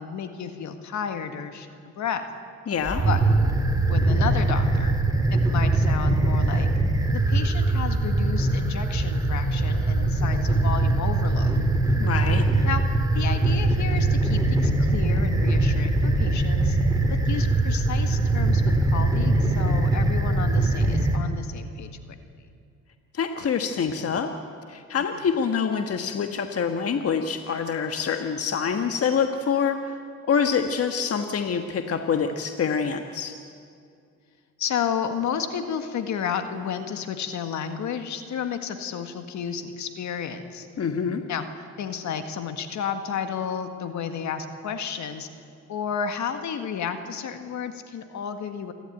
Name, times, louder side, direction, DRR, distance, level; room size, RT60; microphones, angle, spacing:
voice 1, 0.0-2.3 3.1-3.2 3.9-5.0 5.5-6.7 7.1-11.6 12.6-12.8 13.1-16.8 17.3-22.2 34.6-40.7 41.3-41.5 41.8-45.3 45.7-48.7, left 7 dB, 70° left, 8 dB, 1.8 m, -32 dB
voice 2, 2.7-3.0 12.0-12.4 23.1-24.3 24.7-30.0 30.3-33.4 40.8-41.2, left 6 dB, 50° left, 6 dB, 1.4 m, -26 dB
sound 1, 2.8-21.2, right 2 dB, 10° right, 3.0 m, -22 dB
27.5 x 12.5 x 9.2 m, 2.3 s
cardioid pair, 90°, 30 cm